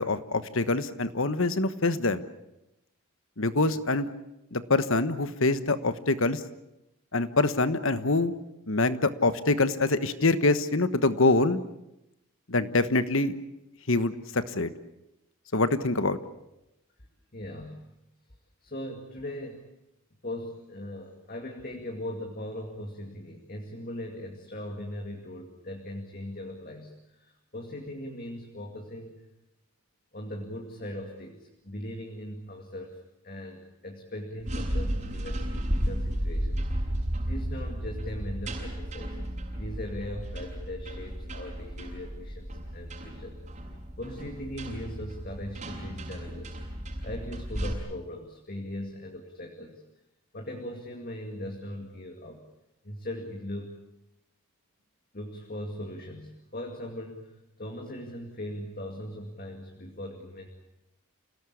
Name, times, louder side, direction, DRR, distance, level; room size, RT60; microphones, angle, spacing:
voice 1, 0.0-2.2 3.4-4.1 4.5-6.4 7.1-8.3 8.7-11.6 12.5-13.4 13.9-14.7 15.5-16.2, left 2 dB, 60° left, 12 dB, 1.3 m, -25 dB
voice 2, 17.3-17.8 18.6-19.7 20.2-29.3 30.1-36.9 37.2-39.2 39.5-43.4 44.0-46.6 47.0-49.8 50.3-52.4 52.8-53.7 55.1-60.5, left 1 dB, 40° left, 2 dB, 2.4 m, -39 dB
sound 1, 34.4-47.7, equal, 30° right, 6.7 m, -34 dB
28.5 x 18.0 x 8.5 m, 0.87 s
head